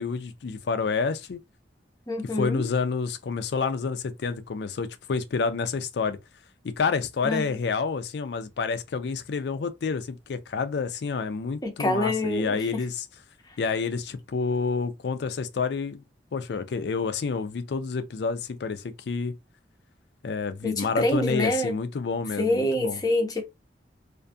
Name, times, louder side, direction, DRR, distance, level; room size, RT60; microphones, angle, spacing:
voice 1, 0.0-1.4 2.4-6.2 6.6-13.0 13.6-16.0 16.3-19.3 20.2-23.0, left 5 dB, 65° left, 0.4 m, -29 dB
voice 2, 2.1-2.6 7.2-7.5 11.6-12.8 13.5-13.6 20.6-21.8 22.4-23.4, left 1 dB, 20° left, 0.6 m, -26 dB
2.5 x 2.3 x 2.6 m
head